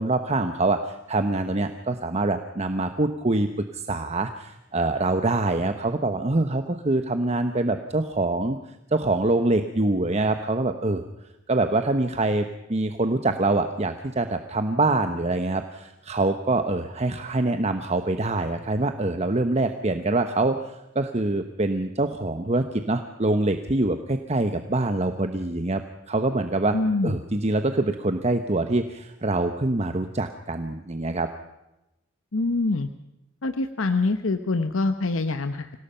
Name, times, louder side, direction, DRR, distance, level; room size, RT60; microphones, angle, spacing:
voice 1, 0.0-8.6 8.9-11.0 11.5-26.7 27.0-31.3, right 2 dB, 35° right, 8 dB, 1.0 m, -25 dB
voice 2, 26.7-27.2 32.3-32.9 33.4-35.7, left 3 dB, 85° left, 9 dB, 0.9 m, -25 dB
26.0 x 17.5 x 5.7 m, 0.94 s
head